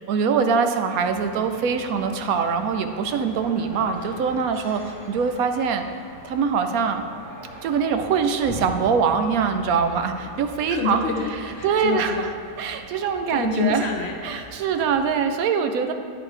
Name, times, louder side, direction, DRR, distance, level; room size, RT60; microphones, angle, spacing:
voice 1, 0.1-4.8 5.1-5.8 6.2-7.1 7.6-11.0 11.6-12.1 12.6-13.8 14.2-15.9, right 6 dB, 80° right, 7 dB, 1.0 m, -23 dB
sound 1, 0.9-15.1, equal, 50° right, 2.5 m, -42 dB
voice 2, 10.7-12.3 13.3-14.5, left 5 dB, 55° left, 1 dB, 0.8 m, -27 dB
10.0 x 3.9 x 4.9 m, 2.2 s
omnidirectional pair, 1.5 m